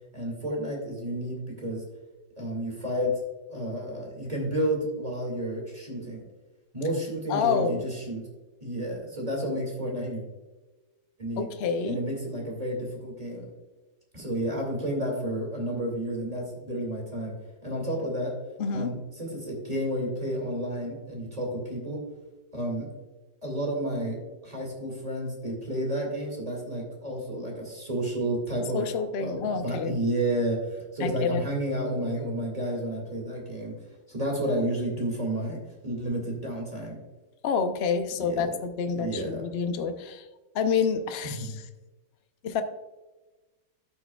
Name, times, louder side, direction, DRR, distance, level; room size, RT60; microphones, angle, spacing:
voice 1, 0.1-1.8 2.4-3.1 3.5-6.2 6.7-8.2 8.6-10.2 11.2-11.5 11.9-13.4 14.1-17.3 17.6-18.3 18.7-22.0 22.5-22.9 23.4-24.2 24.4-28.8 29.2-33.7 34.1-37.0 38.2-38.4 38.9-39.4 41.2-41.5, right 1 dB, 20° right, -1 dB, 2.1 m, -31 dB
voice 2, 7.3-7.9 11.4-12.0 18.6-18.9 28.7-30.0 31.0-31.4 37.4-40.3 40.5-41.6 42.4-42.6, left 5 dB, 75° left, 8 dB, 0.5 m, -28 dB
13.0 x 6.3 x 2.3 m, 1.2 s
omnidirectional pair, 2.0 m